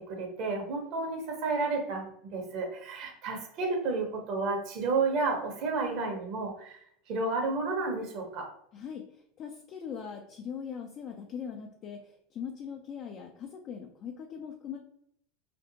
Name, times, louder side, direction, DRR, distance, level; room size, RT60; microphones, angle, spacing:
voice 1, 0.0-6.8 7.1-8.5, right 3 dB, 55° right, 2 dB, 0.9 m, -31 dB
voice 2, 8.7-14.8, left 7 dB, 40° left, 3 dB, 0.4 m, -41 dB
2.5 x 2.1 x 2.8 m, 0.68 s
supercardioid pair, 120°, 0 cm